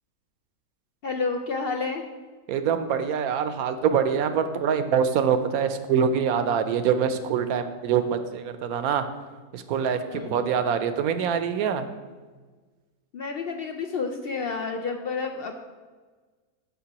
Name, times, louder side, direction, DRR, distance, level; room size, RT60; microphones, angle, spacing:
voice 1, 1.0-2.1 10.0-10.5 13.1-15.6, left 4 dB, 65° left, 4 dB, 0.5 m, -30 dB
voice 2, 2.5-9.0 9.5-11.9, right 7 dB, 80° right, 9 dB, 1.1 m, -24 dB
14.0 x 5.5 x 2.9 m, 1.4 s
omnidirectional pair, 1.5 m